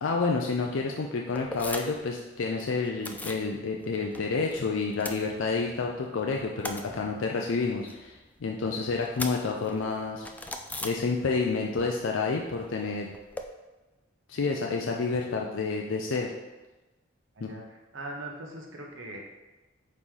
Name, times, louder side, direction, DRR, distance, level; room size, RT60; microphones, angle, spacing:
voice 1, 0.0-10.3 10.8-13.1 14.3-16.3 17.4-17.5, left 4 dB, 75° left, 1 dB, 0.5 m, -29 dB
sound 1, 1.3-2.1 2.4-3.5 3.8-4.6 4.9-5.9 6.2-11.6 11.8-13.4, left 2 dB, 10° left, 0.3 m, -40 dB
voice 2, 17.3-19.2, right 1 dB, 70° right, 0 dB, 1.1 m, -41 dB
8.0 x 3.1 x 3.7 m, 1.1 s
head